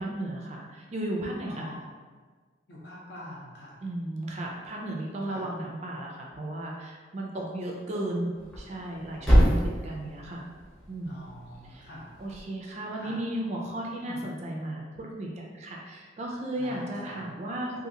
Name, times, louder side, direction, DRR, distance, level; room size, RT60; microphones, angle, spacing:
voice 1, 0.0-1.7 3.8-10.5 10.9-11.2 11.6-11.9 12.2-17.9, right 1 dB, 35° right, -1 dB, 0.4 m, -35 dB
voice 2, 1.4-1.9 2.7-3.8 5.3-5.5 7.3-7.5 11.1-12.1 13.0-13.2 14.0-14.3 16.6-17.2, left 1 dB, 60° left, -5 dB, 0.7 m, -44 dB
Thump thud, 8.4-12.5, equal, 5° left, 0.6 m, -27 dB
2.7 x 2.4 x 2.7 m, 1.5 s
head